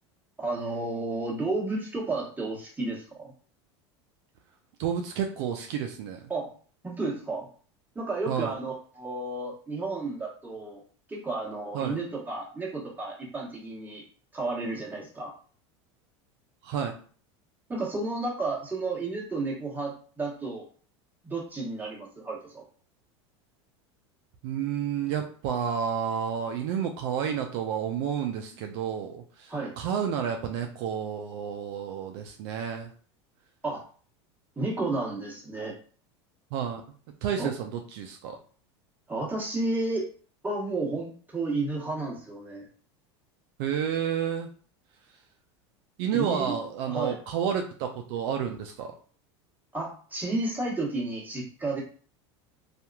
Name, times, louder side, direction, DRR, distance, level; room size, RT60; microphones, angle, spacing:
voice 1, 0.4-3.3 6.3-6.5 6.8-7.5 7.9-10.8 11.1-14.0 14.3-15.3 17.7-20.7 21.2-22.6 29.5-29.7 33.6-33.8 34.6-35.7 37.4-37.5 39.1-40.0 40.4-42.7 46.1-46.6 46.9-47.2 49.7-51.8, right 2 dB, 10° right, -3 dB, 1.1 m, -32 dB
voice 2, 4.8-6.2 8.3-8.5 11.7-12.0 16.6-16.9 24.4-32.9 36.5-36.8 37.2-38.4 43.6-44.5 46.0-48.9, right 8 dB, 65° right, 4 dB, 0.4 m, -30 dB
2.8 x 2.4 x 2.2 m, 0.43 s
hypercardioid pair, 100°, 15 cm